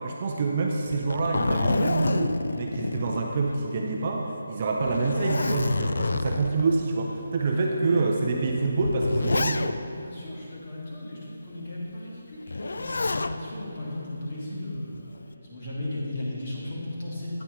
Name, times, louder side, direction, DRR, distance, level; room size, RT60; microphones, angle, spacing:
voice 1, 0.0-9.7, right 3 dB, 30° right, 0 dB, 0.5 m, -26 dB
Zipper (clothing), 0.9-3.8 4.1-4.2 4.8-6.6 7.4-7.5 8.5-10.0 12.5-13.4 14.7-15.2, left 3 dB, 70° left, 0.3 m, -28 dB
voice 2, 7.5-8.0 10.0-17.4, left 1 dB, 35° left, -6 dB, 1.9 m, -36 dB
9.1 x 8.4 x 3.1 m, 2.8 s
hypercardioid pair, 175°, 0 cm